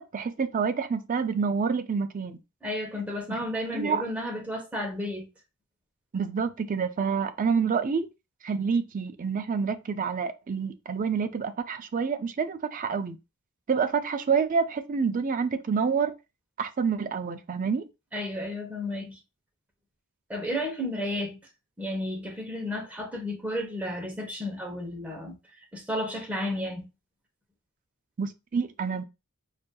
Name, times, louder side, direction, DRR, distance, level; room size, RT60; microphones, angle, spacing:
voice 1, 0.0-2.4 3.3-3.4 3.7-4.0 6.1-8.1 8.4-13.2 13.7-16.2 16.6-17.8 28.2-29.0, right 5 dB, 40° right, 0.4 m, -28 dB
voice 2, 2.6-5.3 18.1-19.2 20.3-21.4 21.8-25.4 25.7-26.9, left 1 dB, 5° right, 0.8 m, -32 dB
4.9 x 2.6 x 2.3 m
head